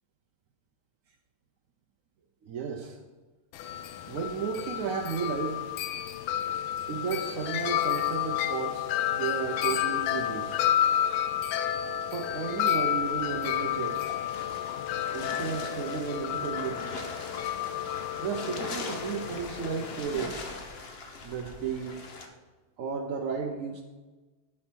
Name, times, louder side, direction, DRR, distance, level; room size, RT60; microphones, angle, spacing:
voice 1, 2.4-3.0 4.1-5.6 6.9-10.6 12.1-14.0 14.6-14.7 15.1-16.9 18.2-20.4 21.2-22.0 22.8-23.8, right 6 dB, 75° right, 3 dB, 0.7 m, -33 dB
Wind chime, 3.5-20.0, left 11 dB, 80° left, 1.4 m, -31 dB
sound 1, 13.0-22.3, left 3 dB, 65° left, 0.6 m, -41 dB
9.7 x 7.4 x 4.5 m, 1.3 s
omnidirectional pair, 2.3 m